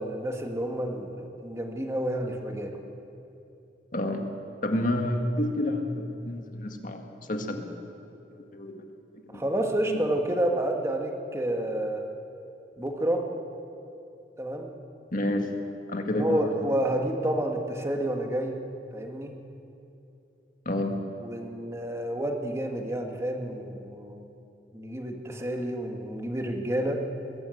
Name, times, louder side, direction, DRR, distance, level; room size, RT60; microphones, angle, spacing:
voice 1, 0.0-2.8 9.3-12.0 12.8-13.3 14.4-14.7 16.1-18.6 18.9-19.3 21.2-24.2 24.7-27.0, right 1 dB, 15° right, 3 dB, 1.7 m, -29 dB
voice 2, 3.9-4.3 4.6-7.8 8.3-8.8 9.3-9.4 9.9-10.0 15.1-15.5 15.9-16.7 20.7-21.0, left 1 dB, 50° left, 4 dB, 1.9 m, -29 dB
21.5 x 15.0 x 7.9 m, 2.8 s
head